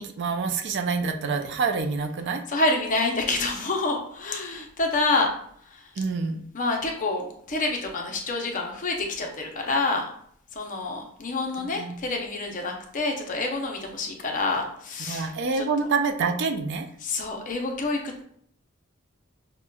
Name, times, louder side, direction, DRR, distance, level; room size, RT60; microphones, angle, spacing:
voice 1, 0.0-2.4 6.0-6.4 11.7-11.9 15.1-16.9, right 4 dB, 55° right, 6 dB, 0.4 m, -27 dB
voice 2, 2.5-5.3 5.7-5.9 6.5-10.0 10.5-15.6 17.0-18.2, left 3 dB, 40° left, 2 dB, 0.6 m, -27 dB
6.0 x 2.2 x 2.3 m, 0.65 s
head